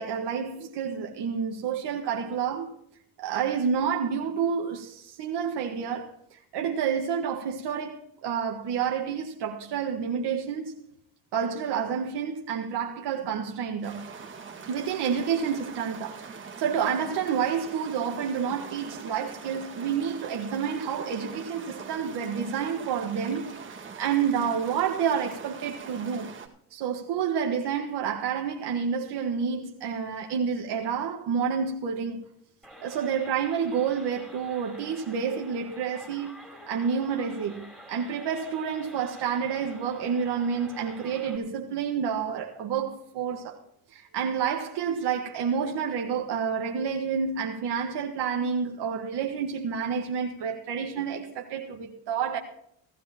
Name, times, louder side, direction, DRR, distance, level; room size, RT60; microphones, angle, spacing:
voice 1, 0.0-2.7 3.2-10.7 11.3-14.0 14.7-16.2 16.6-26.3 26.7-32.2 32.8-36.3 36.7-43.6 43.9-52.4, right 7 dB, 65° right, 1.7 m, -29 dB
sound 1, 13.8-26.5, right 5 dB, 25° right, 2.0 m, -43 dB
sound 2, 32.6-41.4, equal, ahead, 3.6 m, -48 dB
18.0 x 13.5 x 3.0 m
cardioid pair, 105°, 45 cm